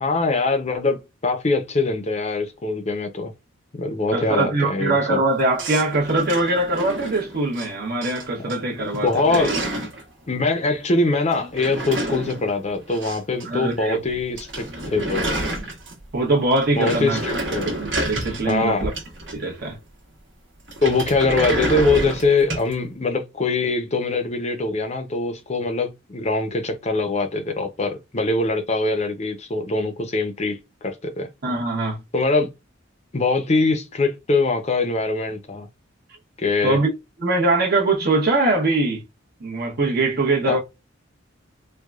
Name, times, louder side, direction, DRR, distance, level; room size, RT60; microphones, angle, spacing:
voice 1, 0.0-3.3 3.7-5.2 8.9-9.6 10.3-15.3 16.8-17.7 18.5-18.9 20.8-31.3 32.1-32.5 33.1-35.7 36.4-36.8 40.5-40.6, left 3 dB, 35° left, 0.6 m, -23 dB
voice 2, 4.1-9.5 13.4-14.0 16.1-17.2 17.7-18.9 19.3-19.8 31.4-32.0 36.6-36.9 37.2-39.0 39.4-40.6, right 2 dB, 55° right, 1.1 m, -22 dB
sound 1, 5.6-7.7 8.0-8.5 8.8-10.0 11.3-13.5 13.7-13.8 14.1-14.2 14.4-16.1 16.5-19.6 20.7-22.7, right 1 dB, 70° right, 1.3 m, -29 dB
4.6 x 2.2 x 2.4 m
head